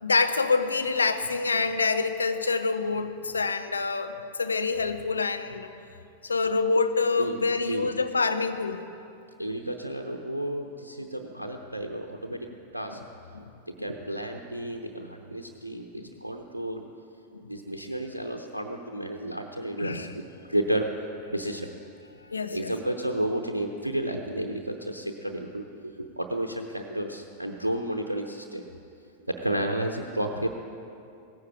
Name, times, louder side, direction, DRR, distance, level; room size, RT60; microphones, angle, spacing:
voice 1, 0.0-5.7 6.2-8.8 13.3-13.5 13.8-13.9 15.9-16.0 17.3-17.5 19.8-20.1 22.2-22.7, left 4 dB, 75° left, 8 dB, 0.8 m, -26 dB
voice 2, 9.4-13.0 13.7-16.8 17.5-20.1 20.5-20.9 21.3-21.7 22.5-28.7 29.3-30.5, right 1 dB, 85° right, 2 dB, 0.8 m, -32 dB
17.5 x 15.5 x 4.8 m, 2.6 s
figure-of-eight pair, 90°, 0 cm